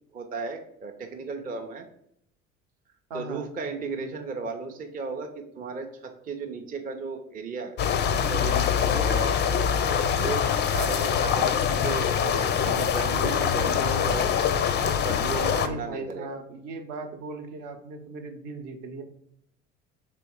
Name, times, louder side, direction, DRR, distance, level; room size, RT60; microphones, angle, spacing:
voice 1, 0.1-1.8 3.1-9.4 10.1-14.4 14.8-16.3, right 4 dB, 25° right, 4 dB, 0.5 m, -35 dB
voice 2, 3.1-3.5 15.5-19.0, right 3 dB, 55° right, 5 dB, 0.8 m, -37 dB
sound 1, 7.8-15.7, left 8 dB, 30° left, 0.4 m, -24 dB
3.4 x 3.1 x 4.5 m, 0.72 s
figure-of-eight pair, 60°, 38 cm